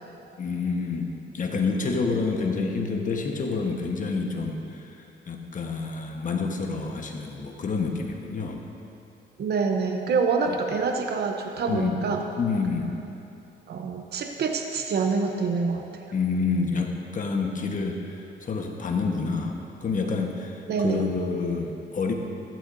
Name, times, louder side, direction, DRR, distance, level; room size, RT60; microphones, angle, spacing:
voice 1, 0.4-4.9 5.3-8.6 11.7-12.0 12.4-12.9 16.1-22.1, left 4 dB, 40° left, 2 dB, 1.3 m, -28 dB
voice 2, 9.4-12.2 13.7-15.8 20.7-21.1, right 5 dB, 55° right, 3 dB, 0.8 m, -26 dB
14.5 x 12.0 x 2.7 m, 3.0 s
cardioid pair, 90°, 20 cm